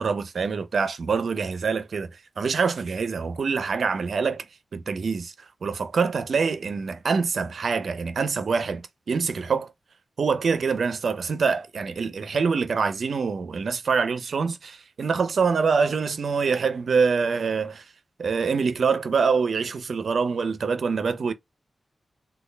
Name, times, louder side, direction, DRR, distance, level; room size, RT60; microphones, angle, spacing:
voice 1, 0.0-4.5 4.7-9.7 10.2-17.8 18.2-21.3, right 5 dB, 70° right, 0.5 m, -25 dB
3.2 x 2.3 x 3.3 m
cardioid pair, 60°, 0 cm